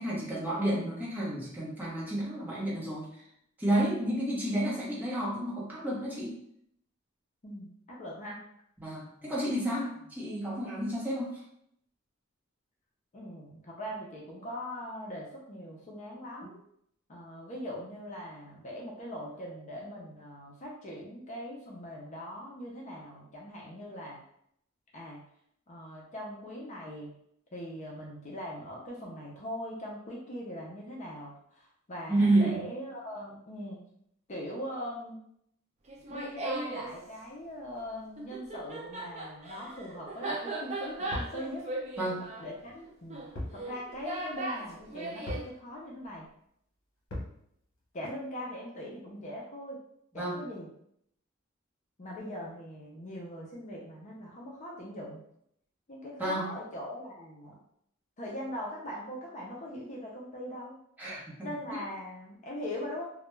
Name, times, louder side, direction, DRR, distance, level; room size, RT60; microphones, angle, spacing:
voice 1, 0.0-3.1 3.6-6.3 8.8-11.3 32.1-32.6 42.0-42.2 50.1-50.4 56.2-56.5 61.0-61.5, right 1 dB, 10° right, -7 dB, 0.8 m, -30 dB
voice 2, 7.4-8.4 9.2-9.3 13.1-16.6 17.1-24.2 24.9-25.2 25.7-27.1 27.5-33.8 34.3-35.2 36.1-41.7 42.4-46.3 47.9-49.8 50.1-50.7 52.0-55.2 55.9-57.6 58.2-60.8 61.4-63.1, equal, 35° left, -3 dB, 0.5 m, -41 dB
Laughter, 35.9-36.9 38.2-45.5, right 2 dB, 35° right, 0.4 m, -38 dB
sound 1, 41.1-41.4 43.3-43.6 43.9-44.0 45.3-45.5 47.1-47.4, left 1 dB, 65° left, 0.9 m, -37 dB
2.3 x 2.1 x 3.0 m, 0.71 s
head